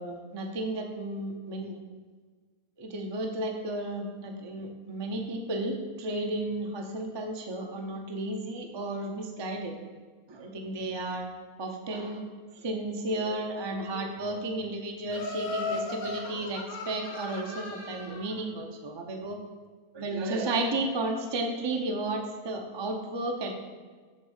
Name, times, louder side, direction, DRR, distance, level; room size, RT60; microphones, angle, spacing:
voice 1, 0.0-1.8 2.8-9.8 10.3-11.3 11.6-19.4 19.9-23.5, right 2 dB, 30° right, 2 dB, 0.5 m, -33 dB
Laughter, 15.1-18.3, left 3 dB, 75° left, 1.4 m, -36 dB
7.5 x 3.6 x 6.4 m, 1.5 s
omnidirectional pair, 1.6 m